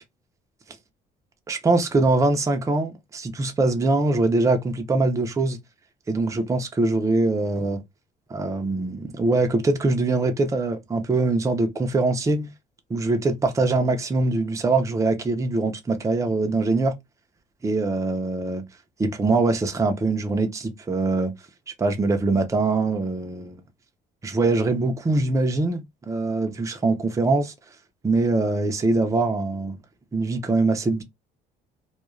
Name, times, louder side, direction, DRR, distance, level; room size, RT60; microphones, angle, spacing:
voice 1, 1.5-5.6 6.1-7.8 8.3-12.5 12.9-16.9 17.6-18.6 19.0-21.3 21.8-23.6 24.2-27.5 28.0-29.8 30.1-31.0, right 3 dB, 20° right, 0.5 m, -23 dB
2.3 x 2.2 x 3.0 m
cardioid pair, 110°, 17 cm